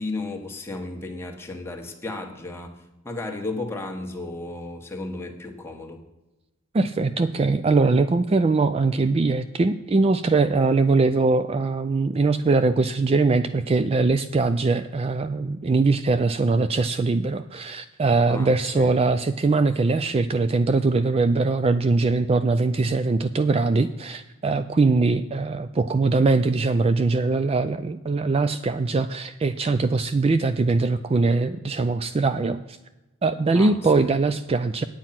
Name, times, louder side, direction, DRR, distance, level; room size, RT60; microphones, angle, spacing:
voice 1, 0.0-2.8 3.0-6.0 18.3-18.9 33.5-33.9, left 2 dB, 10° left, 2 dB, 1.4 m, -34 dB
voice 2, 6.7-32.8 33.2-34.8, right 3 dB, 30° right, 11 dB, 0.3 m, -22 dB
9.3 x 8.7 x 5.9 m, 1.0 s
head